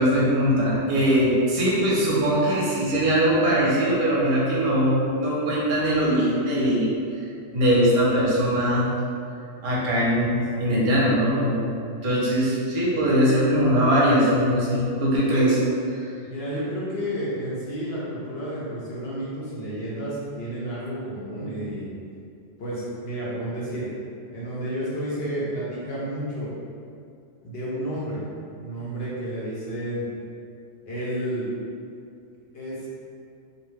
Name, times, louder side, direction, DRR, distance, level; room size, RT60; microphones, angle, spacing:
voice 1, 0.0-6.9 7.5-8.9 9.6-11.7 12.0-15.6 16.0-16.1, equal, 50° right, -6 dB, 0.7 m, -21 dB
voice 2, 16.3-21.9 22.6-23.9 24.3-26.5 27.4-28.2 28.6-30.1 30.9-31.5 32.5-32.8, equal, 60° left, -8 dB, 0.8 m, -31 dB
2.5 x 2.2 x 3.1 m, 2.4 s
omnidirectional pair, 1.3 m